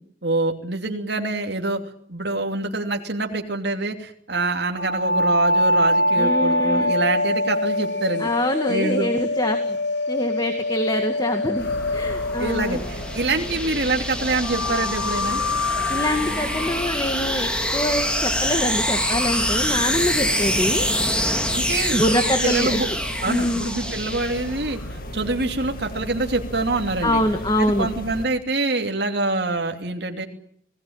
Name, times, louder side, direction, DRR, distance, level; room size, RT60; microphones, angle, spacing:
voice 1, 0.2-1.8 2.1-8.3 8.7-9.1 12.4-15.4 21.5-22.0 22.4-22.9 23.2-27.2 27.6-30.3, right 2 dB, 60° right, 3 dB, 2.9 m, -25 dB
sound 1, 4.8-13.6 14.4-19.2, left 1 dB, 70° left, 1.9 m, -25 dB
voice 2, 6.2-6.9 8.2-9.8 10.1-12.8 15.7-20.8 21.9-22.8 23.3-23.7 27.0-27.9, left 1 dB, 20° left, 6 dB, 2.0 m, -24 dB
sound 2, 11.4-24.8, equal, 5° left, 2.8 m, -26 dB
sound 3, 11.6-28.3, left 1 dB, 50° left, 2.3 m, -35 dB
28.5 x 18.5 x 8.8 m, 0.68 s
head